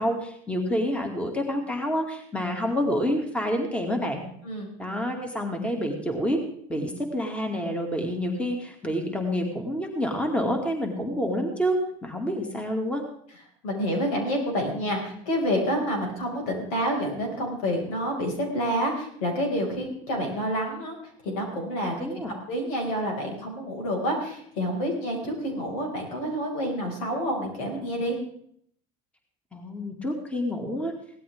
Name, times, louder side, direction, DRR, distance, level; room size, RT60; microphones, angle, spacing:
voice 1, 0.0-4.2 4.8-6.4 6.7-11.8 12.0-13.0 22.0-22.3 29.5-30.9, equal, 5° left, 3 dB, 2.4 m, -28 dB
voice 2, 13.6-21.0 21.2-21.9 22.5-28.2, equal, 80° left, 1 dB, 5.7 m, -28 dB
17.5 x 13.0 x 3.7 m, 0.65 s
supercardioid pair, 105°, 17 cm